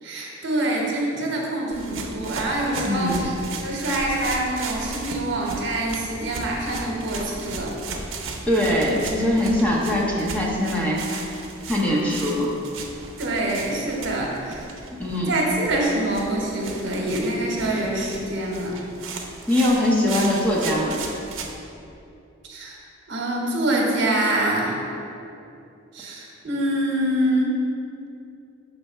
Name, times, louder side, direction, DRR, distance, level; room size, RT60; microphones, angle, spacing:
voice 1, 0.0-7.7 13.2-14.7 15.3-18.8 22.4-22.8 23.1-24.8 25.9-27.6, right 1 dB, 65° right, -1 dB, 1.0 m, -25 dB
sound 1, 1.7-21.5, right 3 dB, 80° right, 0.6 m, -36 dB
voice 2, 2.8-3.2 8.5-11.0 11.7-12.5 15.0-15.3 19.5-21.0, left 1 dB, 5° left, -5 dB, 0.8 m, -22 dB
5.8 x 3.4 x 5.5 m, 2.7 s
head